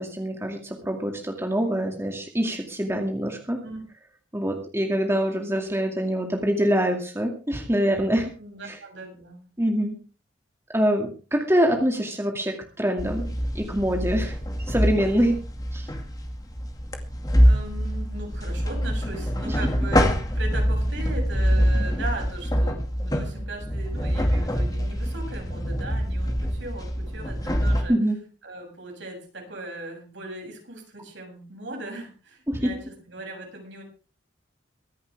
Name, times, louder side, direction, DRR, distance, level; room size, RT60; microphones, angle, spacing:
voice 1, 0.0-3.6 4.3-8.3 8.7-8.8 9.6-10.0 10.7-13.3 13.5-14.4 14.7-15.4 15.7-15.9 19.5-19.6 27.9-28.2 32.5-32.7, equal, 15° right, 2 dB, 2.4 m, -25 dB
voice 2, 8.4-9.5 17.4-28.0 28.4-33.8, right 2 dB, 70° right, 1 dB, 7.6 m, -38 dB
sound 1, 13.0-27.8, equal, 20° left, 2.3 m, -25 dB
24.0 x 11.0 x 3.5 m, 0.35 s
head